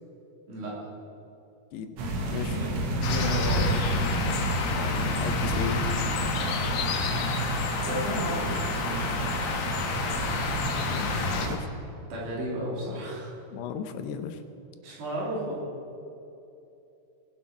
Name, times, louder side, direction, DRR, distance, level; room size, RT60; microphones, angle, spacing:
voice 1, 1.7-2.6 4.7-5.8 10.7-11.7 13.5-14.4, left 7 dB, 85° left, 9 dB, 2.9 m, -36 dB
sound 1, 2.0-11.6, right 1 dB, 60° right, 2.1 m, -29 dB
sound 2, 3.0-11.5, left 6 dB, 65° left, 2.2 m, -31 dB
voice 2, 3.0-3.8 6.4-6.7 7.9-9.3 12.1-13.4 14.8-15.6, equal, 85° right, -5 dB, 5.4 m, -33 dB
19.5 x 7.7 x 6.1 m, 2.9 s
omnidirectional pair, 4.6 m